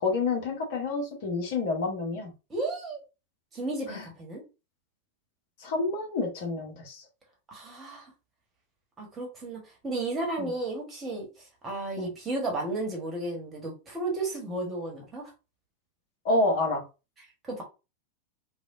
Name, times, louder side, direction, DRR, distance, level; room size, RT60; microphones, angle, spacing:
voice 1, 0.0-2.3 3.9-4.1 5.6-7.0 10.4-10.5 12.0-12.1 16.2-16.8, left 3 dB, 50° left, 1.0 m, -28 dB
voice 2, 2.5-3.0 3.5-4.4 7.5-8.1 9.0-11.3 11.6-15.3 17.4-17.6, right 2 dB, 20° right, 1.3 m, -33 dB
3.3 x 2.4 x 2.5 m
figure-of-eight pair, 90°, 0 cm